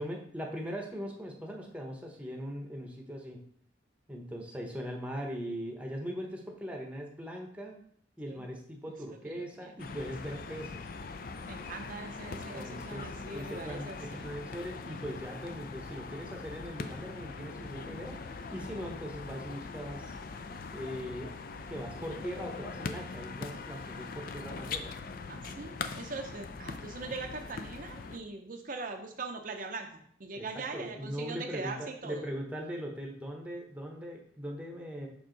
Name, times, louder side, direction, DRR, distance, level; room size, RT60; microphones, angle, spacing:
voice 1, 0.0-3.4 4.1-7.8 8.2-10.9 12.3-18.2 18.5-20.0 20.7-21.3 21.7-24.9 30.4-35.1, equal, 5° right, 1 dB, 0.8 m, -40 dB
voice 2, 9.2-9.7 11.5-14.3 25.3-32.3, right 3 dB, 45° right, 3 dB, 0.6 m, -41 dB
sound 1, 9.8-28.2, left 4 dB, 50° left, 0.4 m, -42 dB
5.9 x 4.6 x 3.8 m, 0.65 s
head